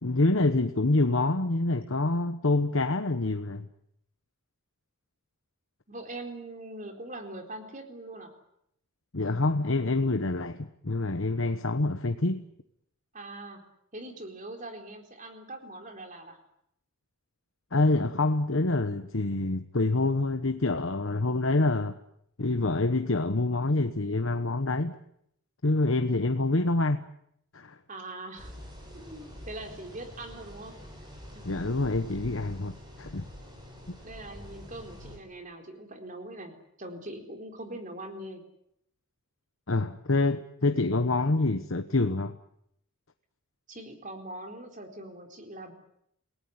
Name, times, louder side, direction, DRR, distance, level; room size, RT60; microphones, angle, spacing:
voice 1, 0.0-3.7 9.1-12.4 17.7-21.9 22.4-25.0 25.6-27.0 27.5-27.8 31.4-33.3 39.7-42.4, left 2 dB, 65° left, 1.1 m, -26 dB
voice 2, 5.9-8.3 13.1-13.6 13.9-16.4 27.9-28.5 28.9-30.8 31.3-31.7 34.0-38.4 43.7-45.7, right 1 dB, 35° right, 4.1 m, -42 dB
sound 1, 28.4-35.2, equal, 20° right, 7.3 m, -46 dB
29.0 x 18.0 x 9.6 m
head